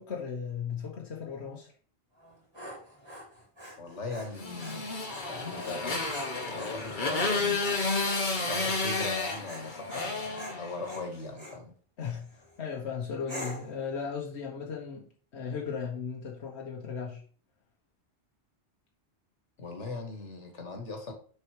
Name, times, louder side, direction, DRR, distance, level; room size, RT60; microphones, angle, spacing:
voice 1, 0.0-1.7 12.0-15.1 15.3-17.2, left 6 dB, 70° left, 1.4 m, -36 dB
Dog, 2.2-11.6 12.2-12.6 13.3-13.8, equal, 20° right, 2.8 m, -46 dB
voice 2, 3.8-4.9 5.3-6.0 6.5-7.7 8.5-11.7 19.6-21.1, left 3 dB, 85° left, 1.9 m, -39 dB
Motorcycle, 4.4-11.1, left 3 dB, 45° left, 1.4 m, -31 dB
6.5 x 4.4 x 4.8 m
omnidirectional pair, 1.2 m